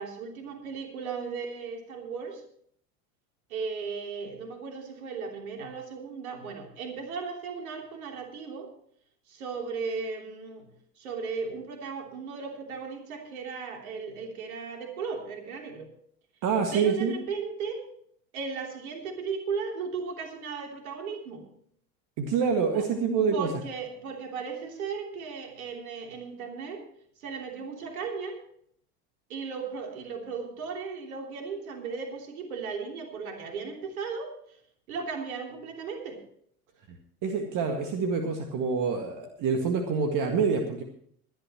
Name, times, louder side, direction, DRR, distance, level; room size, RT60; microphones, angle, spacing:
voice 1, 0.0-2.4 3.5-8.7 9.3-10.7 11.0-15.9 16.7-17.9 18.3-21.5 22.7-22.9 23.3-26.8 27.2-28.4 29.3-34.3 34.9-36.2, right 5 dB, 65° right, 3 dB, 3.3 m, -36 dB
voice 2, 16.4-17.1 22.2-23.5 36.9-37.0 37.2-40.8, right 5 dB, 45° right, 5 dB, 2.0 m, -26 dB
22.0 x 11.5 x 3.0 m, 0.63 s
figure-of-eight pair, 70°, 45 cm